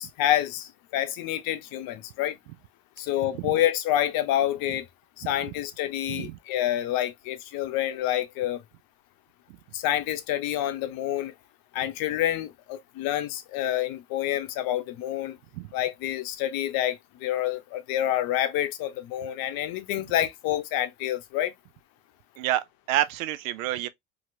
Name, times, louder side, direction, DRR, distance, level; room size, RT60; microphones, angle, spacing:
voice 1, 0.0-2.4 3.0-4.9 5.2-8.6 9.7-11.3 11.7-15.4 15.7-21.5, left 12 dB, 60° left, 0.7 m, -28 dB
voice 2, 6.1-6.4 15.5-15.7 22.4-23.9, right 14 dB, 80° right, 0.5 m, -28 dB
2.8 x 2.8 x 2.5 m
hypercardioid pair, 70°, 40 cm